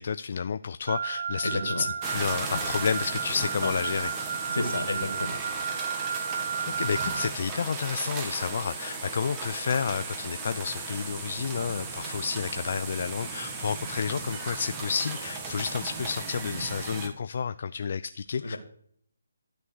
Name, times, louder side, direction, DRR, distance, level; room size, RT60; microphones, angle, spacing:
voice 1, 0.0-4.1 6.8-18.6, left 6 dB, 50° left, 12 dB, 0.4 m, -30 dB
Wind instrument woodwind instrument, 0.9-7.3, right 7 dB, 50° right, 0.8 m, -33 dB
voice 2, 1.4-1.9 3.6-3.7 4.5-5.6 18.4-18.6, left 2 dB, 75° left, 6 dB, 2.4 m, -31 dB
sound 1, 2.0-17.1, right 4 dB, 20° right, 1.8 m, -36 dB
12.5 x 6.3 x 6.5 m, 0.63 s
figure-of-eight pair, 150°, 0 cm